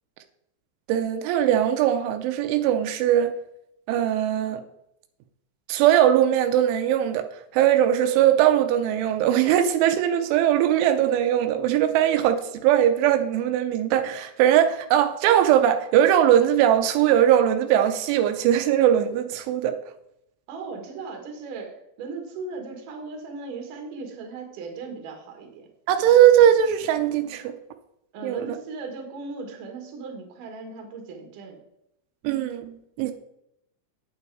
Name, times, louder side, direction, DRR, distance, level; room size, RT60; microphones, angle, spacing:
voice 1, 0.9-3.3 3.9-4.6 5.7-7.3 7.5-19.8 25.9-27.5 28.2-28.6 32.2-33.1, right 10 dB, 85° right, 3.1 m, -20 dB
voice 2, 20.5-25.7 28.1-31.6, right 4 dB, 55° right, 2.8 m, -37 dB
9.2 x 8.4 x 4.8 m
omnidirectional pair, 5.4 m